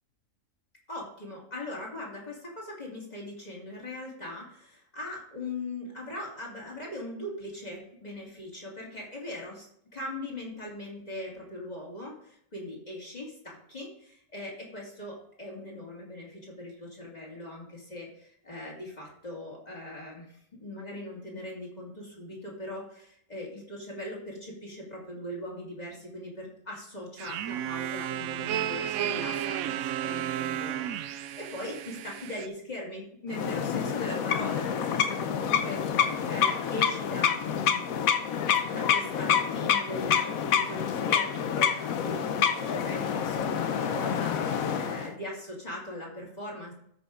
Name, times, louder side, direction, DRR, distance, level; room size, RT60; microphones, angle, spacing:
voice 1, 0.9-9.7 9.9-37.9 38.7-46.7, left 1 dB, 30° left, -3 dB, 2.5 m, -40 dB
sound 1, 27.2-32.5, right 11 dB, 75° right, 1.0 m, -33 dB
sound 2, 33.3-45.1, left 8 dB, 70° left, 1.2 m, -27 dB
13.5 x 5.4 x 3.8 m, 0.70 s
omnidirectional pair, 1.5 m